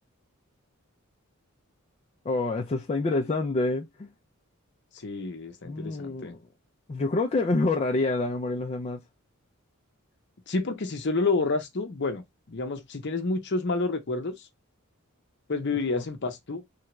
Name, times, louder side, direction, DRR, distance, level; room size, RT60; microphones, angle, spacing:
voice 1, 2.2-4.1 5.6-6.5 6.9-9.0 15.9-16.0, left 2 dB, 30° left, 0.3 m, -27 dB
voice 2, 4.9-6.3 10.5-12.2 12.5-14.4 15.5-16.6, left 3 dB, 55° left, 0.7 m, -29 dB
3.3 x 2.3 x 3.0 m
head